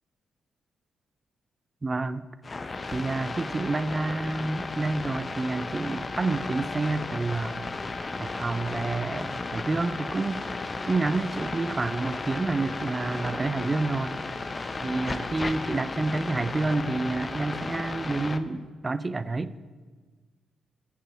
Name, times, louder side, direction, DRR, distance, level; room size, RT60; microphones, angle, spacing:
voice 1, 1.8-2.3 2.9-7.6 8.2-10.4 10.9-14.2 14.8-19.5, right 3 dB, 30° right, 15 dB, 0.5 m, -29 dB
sound 1, 2.4-18.4, left 3 dB, 35° left, 0.7 m, -34 dB
8.4 x 6.7 x 7.1 m, 1.4 s
hypercardioid pair, 40°, 0 cm